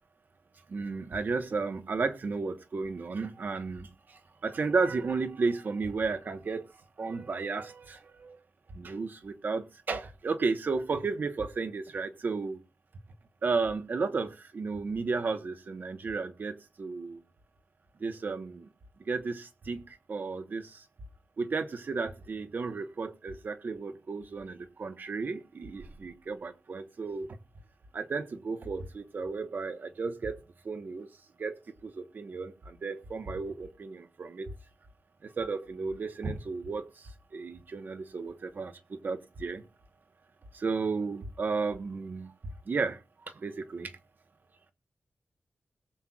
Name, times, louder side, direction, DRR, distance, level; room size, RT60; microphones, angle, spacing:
voice 1, 0.7-6.7 7.0-8.4 8.7-12.6 13.4-17.2 18.0-18.7 19.1-20.8 21.4-27.3 27.9-30.4 30.6-31.1 31.4-34.5 35.2-39.6 40.5-42.3 42.7-43.0 43.3-43.9, right 4 dB, 50° right, 1.1 m, -33 dB
21.0 x 7.5 x 2.4 m
wide cardioid pair, 175°, 4 cm